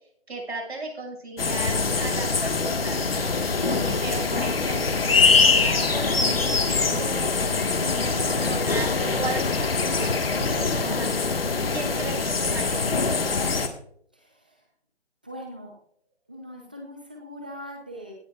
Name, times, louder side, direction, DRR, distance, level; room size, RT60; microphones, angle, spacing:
voice 1, 0.3-3.3 3.7-11.1 11.7-13.2, right 3 dB, 75° right, 0 dB, 6.3 m, -36 dB
sound 1, 1.4-13.7, left 4 dB, 60° left, 1.7 m, -23 dB
voice 2, 3.5-4.2 14.1-14.6 15.2-15.7 16.3-18.1, equal, 10° right, 1 dB, 0.7 m, -41 dB
17.0 x 12.0 x 2.4 m, 0.65 s
hypercardioid pair, 170°, 33 cm